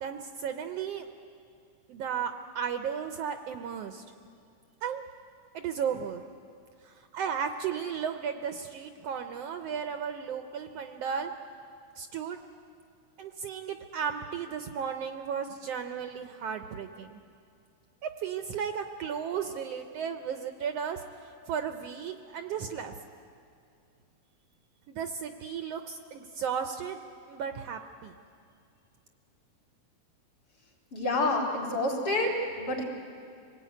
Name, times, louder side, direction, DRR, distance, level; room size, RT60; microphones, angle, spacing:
voice 1, 0.0-1.1 1.9-4.0 4.8-5.0 5.5-6.2 6.8-11.3 12.0-12.4 13.2-17.2 18.2-21.0 21.5-22.9 24.9-27.0 27.3-28.1, right 7 dB, 70° right, 7 dB, 1.7 m, -34 dB
voice 2, 30.9-32.8, left 2 dB, 45° left, 0 dB, 4.1 m, -28 dB
25.5 x 18.0 x 9.3 m, 2.4 s
omnidirectional pair, 3.3 m